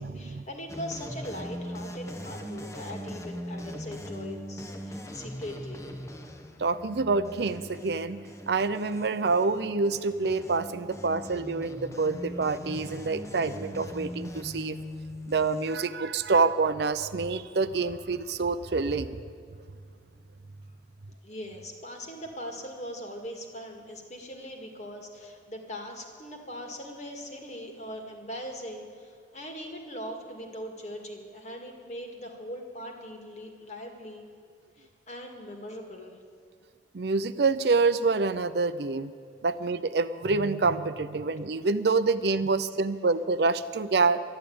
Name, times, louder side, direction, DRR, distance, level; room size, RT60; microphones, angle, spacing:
voice 1, 0.0-5.9 21.2-34.2 34.8-36.2, equal, 40° left, 2 dB, 1.9 m, -40 dB
sound 1, 0.7-15.8, equal, 15° left, 0.9 m, -41 dB
voice 2, 6.6-8.2 8.5-14.8 15.3-19.2 36.9-39.1 39.4-44.2, right 4 dB, 65° right, 12 dB, 0.5 m, -27 dB
12.0 x 11.5 x 8.6 m, 2.2 s
head